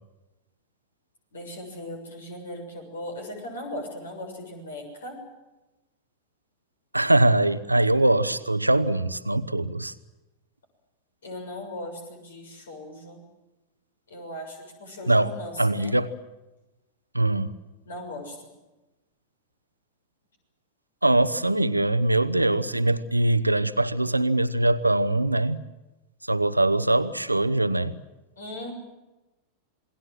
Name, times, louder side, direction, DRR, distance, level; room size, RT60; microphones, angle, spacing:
voice 1, 1.3-5.2 11.2-13.2 14.1-16.0 17.9-18.5 28.4-28.7, left 1 dB, 65° left, 4 dB, 6.9 m, -38 dB
voice 2, 6.9-9.9 15.1-15.3 15.6-16.1 17.1-17.5 21.0-25.7 26.3-28.0, right 1 dB, 85° right, 13 dB, 1.0 m, -22 dB
28.0 x 21.0 x 7.7 m, 1.0 s
figure-of-eight pair, 90°, 0 cm